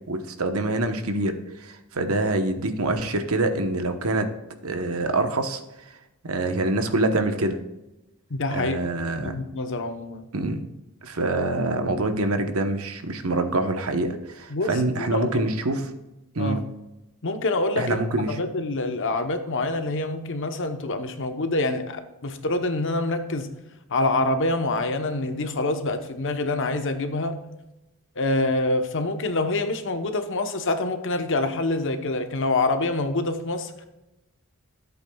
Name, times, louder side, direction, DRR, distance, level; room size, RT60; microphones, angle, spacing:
voice 1, 0.1-4.3 4.6-5.6 6.2-7.6 8.5-9.4 10.3-10.7 11.0-15.9 16.3-16.6 17.8-18.4, right 2 dB, 75° right, 7 dB, 1.1 m, -25 dB
voice 2, 8.3-8.8 9.2-10.3 14.5-15.4 16.4-16.7 17.2-18.0 18.3-23.6 23.9-27.4 28.2-33.9, left 2 dB, 60° left, 7 dB, 1.0 m, -26 dB
13.5 x 8.2 x 2.3 m, 0.96 s
head